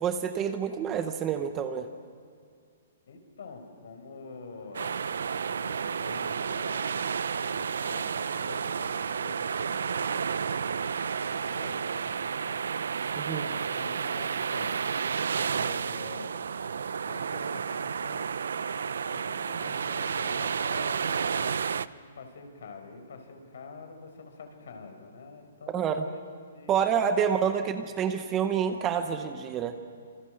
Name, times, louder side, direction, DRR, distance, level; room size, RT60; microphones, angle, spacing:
voice 1, 0.0-1.9 13.2-13.4 25.7-26.1 26.7-29.8, right 7 dB, 15° right, 8 dB, 0.8 m, -28 dB
voice 2, 3.1-10.8 11.1-12.7 13.3-16.3 17.0-18.3 19.1-27.8, left 4 dB, 60° left, 5 dB, 5.0 m, -46 dB
sound 1, 4.7-21.9, right 6 dB, 75° right, 0.7 m, -31 dB
27.5 x 27.0 x 6.5 m, 2.1 s
hypercardioid pair, 180°, 0 cm